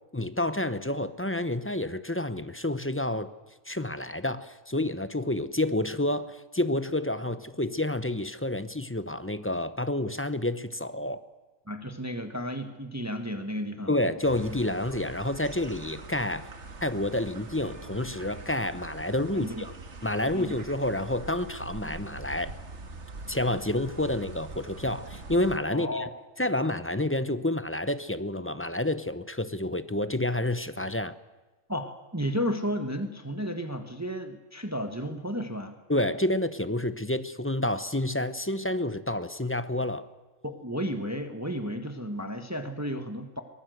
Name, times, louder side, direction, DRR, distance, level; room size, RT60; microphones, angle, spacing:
voice 1, 0.1-3.3 3.7-11.2 13.9-16.5 16.8-19.8 20.0-22.5 23.3-26.1 26.4-31.1 35.9-40.1, left 1 dB, 10° left, 12 dB, 0.8 m, -29 dB
voice 2, 11.7-13.9 19.3-19.6 20.3-20.5 25.7-26.1 31.7-35.8 40.4-43.4, equal, 10° right, 7 dB, 1.5 m, -33 dB
sound 1, 14.2-25.6, right 3 dB, 55° right, 2.0 m, -43 dB
23.0 x 19.5 x 8.0 m, 1.2 s
omnidirectional pair, 1.4 m